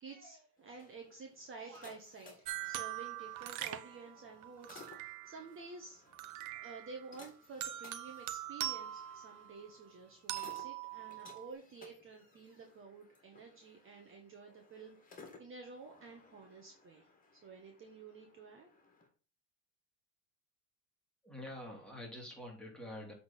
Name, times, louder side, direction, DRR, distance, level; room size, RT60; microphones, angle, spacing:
voice 1, 0.0-6.0 6.6-17.1 17.3-18.7, right 4 dB, 30° right, 2 dB, 1.6 m, -51 dB
sound 1, 0.6-19.1, left 3 dB, 20° left, 2.4 m, -60 dB
sound 2, 2.5-5.5 6.1-7.1 7.6-9.8 10.3-11.5, right 14 dB, 50° right, 0.8 m, -43 dB
voice 2, 21.2-23.1, left 1 dB, ahead, -1 dB, 2.9 m, -46 dB
7.7 x 4.1 x 5.7 m, 0.38 s
supercardioid pair, 110°, 40 cm